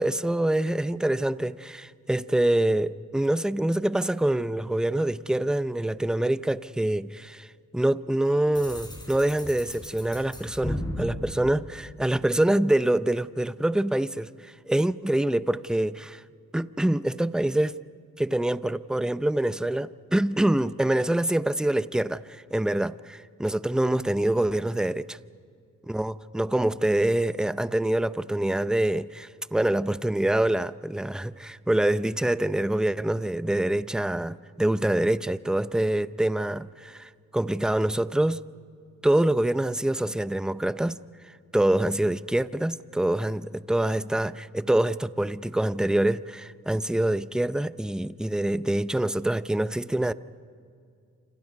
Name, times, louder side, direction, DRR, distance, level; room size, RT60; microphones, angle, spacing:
voice 1, 0.0-7.5 7.7-16.2 16.5-17.8 18.2-25.2 25.9-38.4 39.0-41.0 41.3-50.1, right 1 dB, ahead, 15 dB, 0.6 m, -25 dB
sound 1, 8.5-12.4, left 1 dB, 15° left, 4.6 m, -36 dB
28.5 x 27.0 x 5.3 m, 2.3 s
cardioid pair, 90°, 30 cm